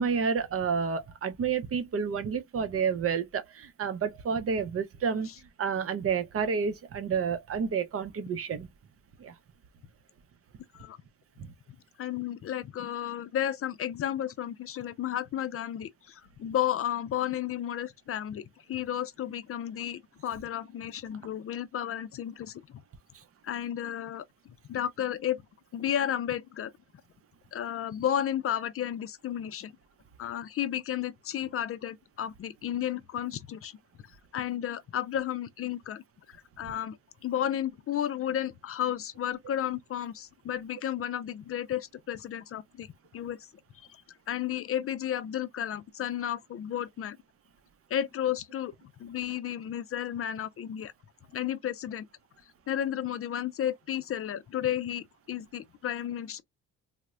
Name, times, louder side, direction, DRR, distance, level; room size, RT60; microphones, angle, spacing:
voice 1, 0.0-5.3 5.6-8.7 9.2-9.3 11.4-11.5, right 6 dB, 50° right, 0.7 m, -30 dB
voice 2, 12.0-22.8 23.4-24.2 24.7-25.4 25.7-26.7 27.5-29.7 30.2-33.7 34.3-36.0 36.3-37.0 37.2-42.9 43.1-43.4 43.9-44.0 44.3-47.2 47.9-48.7 49.0-50.9 51.3-52.1 52.7-56.4, left 10 dB, 50° left, 0.5 m, -33 dB
4.1 x 2.1 x 2.4 m
cardioid pair, 90°, 30 cm